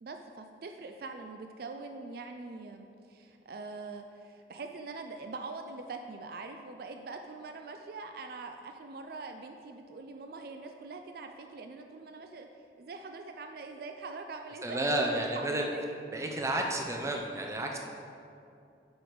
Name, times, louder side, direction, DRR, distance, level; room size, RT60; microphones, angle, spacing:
voice 1, 0.0-12.5 12.8-15.1 15.4-15.8, right 3 dB, 55° right, 5 dB, 0.4 m, -43 dB
voice 2, 14.6-15.7 16.1-17.8, right 1 dB, 15° right, 1 dB, 0.7 m, -31 dB
7.7 x 5.0 x 5.1 m, 2.5 s
head